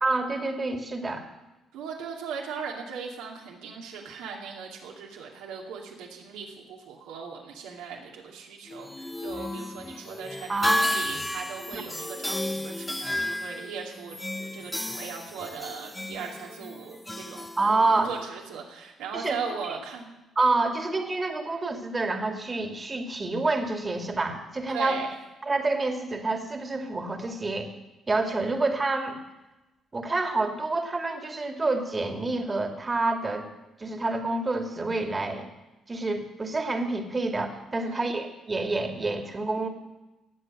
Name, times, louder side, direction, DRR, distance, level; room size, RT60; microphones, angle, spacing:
voice 1, 0.0-1.2 10.5-10.8 11.7-11.9 17.6-18.1 19.1-19.4 19.6-19.8 20.4-25.0 25.4-27.7 28.1-29.2 29.9-33.5 33.8-35.5 35.9-39.7, right 3 dB, 30° right, 4 dB, 2.5 m, -28 dB
voice 2, 1.7-20.1 24.7-25.1 37.8-38.1, right 6 dB, 75° right, 0 dB, 2.6 m, -38 dB
sound 1, 8.7-18.2, left 1 dB, 10° left, 0.8 m, -33 dB
18.0 x 8.0 x 7.6 m, 1.0 s
hypercardioid pair, 50°, 0 cm